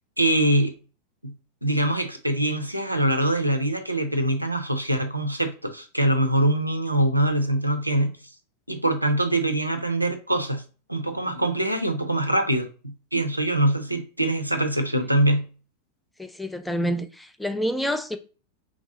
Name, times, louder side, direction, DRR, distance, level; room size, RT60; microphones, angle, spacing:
voice 1, 0.2-0.8 1.2-1.3 1.6-8.2 8.7-10.6 10.9-15.5, right 1 dB, 90° right, 0.4 m, -23 dB
voice 2, 16.2-18.2, equal, 5° left, 0.3 m, -28 dB
3.1 x 2.6 x 3.7 m
figure-of-eight pair, 90°, 0 cm